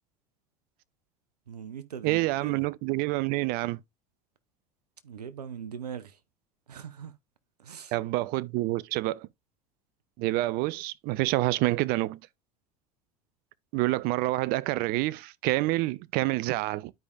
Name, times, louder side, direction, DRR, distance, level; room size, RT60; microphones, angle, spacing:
voice 1, 1.5-2.6 5.0-6.2 6.7-7.1 7.6-7.9, right 8 dB, 85° right, 0.8 m, -40 dB
voice 2, 2.0-3.8 7.9-9.3 10.2-12.2 13.7-16.9, right 19 dB, 50° right, 0.5 m, -27 dB
12.0 x 5.0 x 2.6 m
hypercardioid pair, 80°, 20 cm